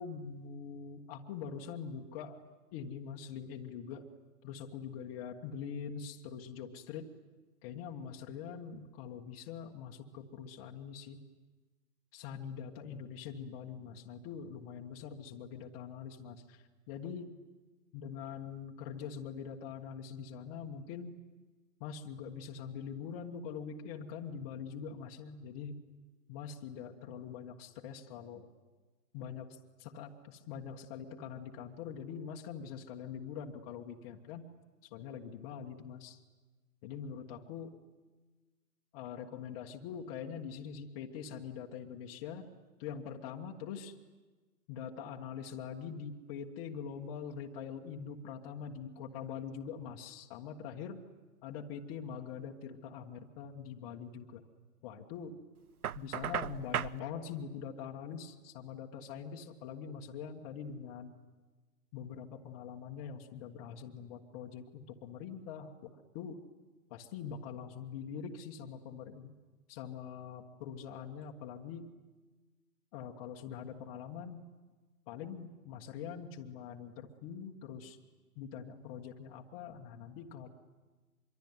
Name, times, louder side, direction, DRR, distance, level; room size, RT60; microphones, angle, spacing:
voice 1, 0.0-2.4 2.7-4.1 4.4-7.1 7.6-11.2 12.1-17.3 17.9-21.2 21.8-25.8 26.3-28.5 29.1-34.5 34.8-36.2 36.8-37.8 38.9-42.5 42.8-43.9 44.7-51.0 51.4-54.4 54.8-55.4 55.9-61.1 61.9-66.5 66.9-69.3 69.7-71.9 72.9-74.5 75.1-78.0 78.3-80.5, left 7 dB, 20° left, 0 dB, 1.4 m, -44 dB
Knock, 55.8-57.0, right 10 dB, 65° right, 0.8 m, -35 dB
25.0 x 23.5 x 9.6 m, 1.3 s
hypercardioid pair, 145°, 47 cm